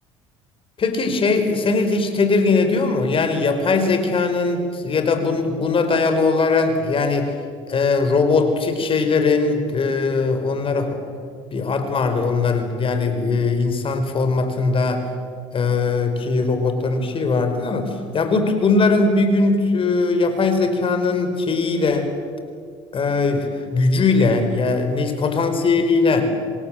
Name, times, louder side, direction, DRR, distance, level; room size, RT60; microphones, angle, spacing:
voice 1, 0.8-7.3 7.7-11.0 11.5-15.0 15.5-22.1 22.9-26.3, left 3 dB, 40° left, 7 dB, 5.0 m, -20 dB
26.5 x 26.0 x 7.7 m, 2.2 s
hypercardioid pair, 70°, 14 cm